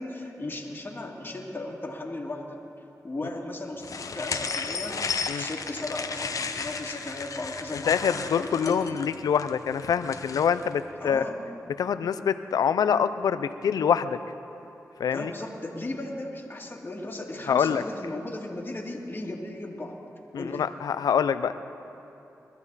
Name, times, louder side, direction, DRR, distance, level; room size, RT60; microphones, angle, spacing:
voice 1, 0.0-2.6 3.0-5.0 5.4-9.0 11.0-11.4 15.1-20.0 20.3-20.6, left 2 dB, 35° left, -2 dB, 2.4 m, -36 dB
sound 1, 3.8-10.7, left 5 dB, 65° left, 0.9 m, -34 dB
voice 2, 7.7-11.2 11.8-14.2 15.0-15.3 17.5-17.8 20.3-21.5, left 7 dB, 85° left, 12 dB, 0.5 m, -25 dB
21.5 x 14.0 x 4.1 m, 2.9 s
cardioid pair, 50°, 6 cm